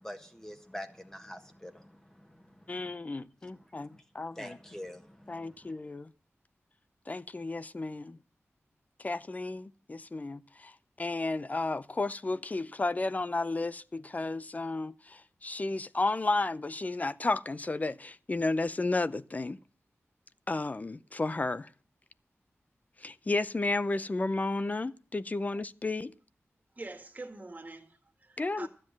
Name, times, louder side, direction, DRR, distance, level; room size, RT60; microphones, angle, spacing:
voice 1, 0.0-2.9 3.4-3.5 3.9-4.0 4.3-5.7, left 1 dB, 10° left, 1.5 m, -46 dB
voice 2, 2.7-4.6 5.3-6.1 7.1-8.2 9.0-10.7 11.0-19.6 20.5-21.7 23.0-26.1 28.4-28.7, left 2 dB, 35° left, 0.6 m, -33 dB
voice 3, 26.8-28.7, right 2 dB, 35° right, 1.9 m, -45 dB
13.0 x 7.7 x 7.4 m
wide cardioid pair, 110°, 5 cm